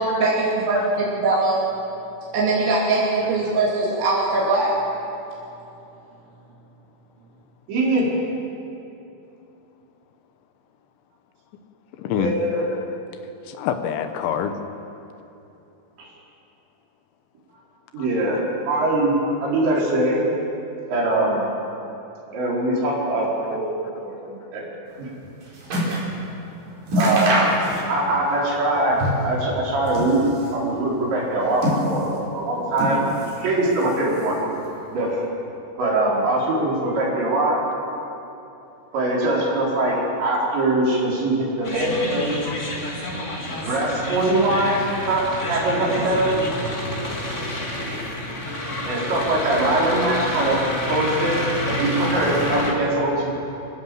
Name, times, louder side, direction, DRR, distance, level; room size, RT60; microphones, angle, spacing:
voice 1, 0.0-1.6 2.3-4.7, right 2 dB, 80° right, -6 dB, 5.7 m, -21 dB
voice 2, 7.7-8.1 12.2-12.7 17.9-18.4 18.7-20.2 20.9-21.5 22.3-24.6 25.0-25.1 27.0-27.4 27.9-29.0 29.2-30.3 30.5-33.0 33.4-34.4 34.9-35.2 35.8-37.6 38.9-42.4 43.5-46.3 48.8-51.4 51.7-53.3, right 2 dB, 65° right, -4 dB, 6.8 m, -22 dB
voice 3, 12.0-12.8 13.4-14.5 18.0-18.1 41.6-41.7 42.4-42.7 44.6-44.7, left 8 dB, 75° left, 7 dB, 3.2 m, -28 dB
sound 1, 25.0-26.1 26.5-26.6 26.9-28.2 28.4-29.4 29.8-30.6 31.2-32.3 32.7-33.4 33.7-34.5 35.2-35.3, equal, 45° right, 6.1 m, -25 dB
sound 2, 41.6-52.7, left 1 dB, 25° left, 1.7 m, -28 dB
26.0 x 17.0 x 7.8 m, 2.9 s
omnidirectional pair, 5.7 m